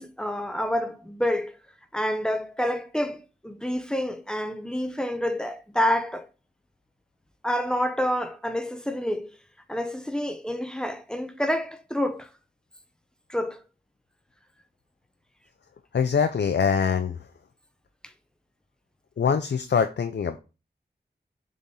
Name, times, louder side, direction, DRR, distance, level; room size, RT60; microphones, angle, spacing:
voice 1, 0.0-1.6 1.9-6.3 7.4-9.3 9.7-12.3 13.3-13.6, equal, 5° left, 0.8 m, -28 dB
voice 2, 15.9-17.2 19.2-20.4, left 6 dB, 90° left, 0.5 m, -23 dB
7.1 x 4.1 x 3.8 m
wide cardioid pair, 85°, 18 cm